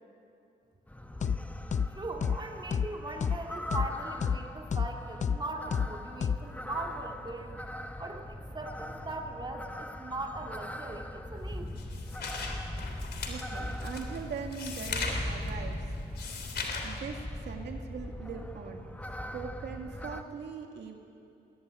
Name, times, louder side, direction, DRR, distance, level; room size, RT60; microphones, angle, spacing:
sound 1, 0.9-20.2, left 1 dB, 10° left, 1.3 m, -40 dB
sound 2, 1.2-1.4 1.7-1.9 2.2-2.4 2.7-2.9 3.2-3.4 3.7-3.9 4.2-4.4 4.7-4.9 5.2-5.4 5.7-5.9 6.2-6.4, left 7 dB, 40° left, 0.6 m, -28 dB
voice 1, 1.9-7.5 8.0-11.7, right 2 dB, 25° right, 1 dB, 2.8 m, -40 dB
sound 3, 11.4-17.0, left 4 dB, 70° left, 3.3 m, -38 dB
voice 2, 13.3-15.9 16.8-18.9 19.3-21.0, right 6 dB, 75° right, 3 dB, 1.9 m, -41 dB
19.5 x 19.0 x 9.8 m, 2.6 s
cardioid pair, 90°, 18 cm